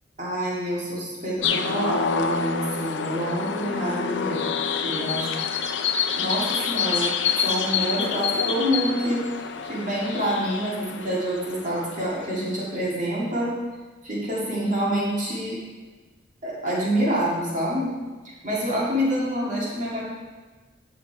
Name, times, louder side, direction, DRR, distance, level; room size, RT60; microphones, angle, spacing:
voice 1, 0.2-5.5 6.2-7.1 7.4-9.2 9.6-13.6 14.0-15.6 16.4-17.9 18.2-20.0, equal, 45° right, -5 dB, 2.0 m, -27 dB
sound 1, 1.4-12.5, left 6 dB, 80° left, 0.5 m, -27 dB
9.0 x 5.8 x 4.5 m, 1.3 s
head